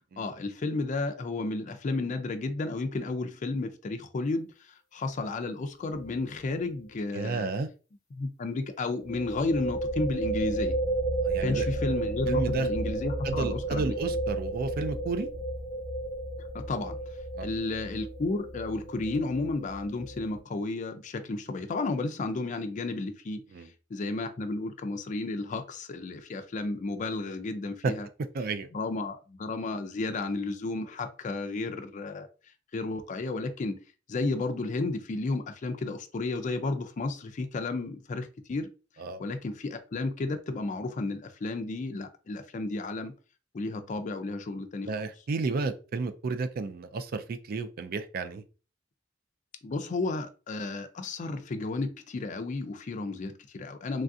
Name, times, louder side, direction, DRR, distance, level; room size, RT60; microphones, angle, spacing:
voice 1, 0.2-7.5 8.2-10.7 11.4-13.9 16.5-17.0 17.4-23.4 23.9-28.1 28.7-32.3 32.7-33.8 34.1-38.7 39.2-43.1 43.5-44.9 49.6-54.0, left 3 dB, 40° left, 0.4 m, -32 dB
sound 1, 5.9-6.2 6.4-6.5 9.0-20.4, right 2 dB, 15° left, 1.1 m, -32 dB
voice 2, 7.1-7.7 11.2-11.7 12.3-12.7 13.2-15.3 17.3-17.5 23.5-23.7 27.8-27.9 28.3-28.7 39.0-39.2 44.9-48.4, right 4 dB, 50° right, 0.4 m, -32 dB
3.2 x 2.4 x 2.6 m
head